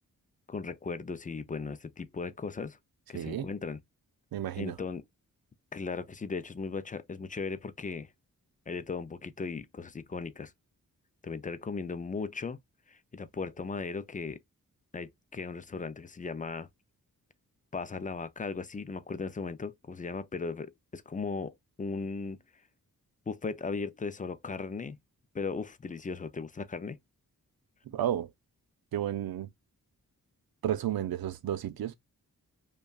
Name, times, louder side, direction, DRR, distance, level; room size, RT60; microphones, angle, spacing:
voice 1, 0.5-2.8 3.1-3.8 4.6-5.0 5.7-8.1 8.7-10.5 11.2-12.6 12.9-14.4 14.9-16.7 17.7-22.4 23.3-25.0 25.3-27.0, left 4 dB, 25° left, 0.4 m, -37 dB
voice 2, 3.1-3.5 4.3-4.8 27.9-28.3 28.9-29.5 30.6-31.9, right 11 dB, 85° right, 0.6 m, -32 dB
5.3 x 2.3 x 2.3 m
wide cardioid pair, 135°, 35 cm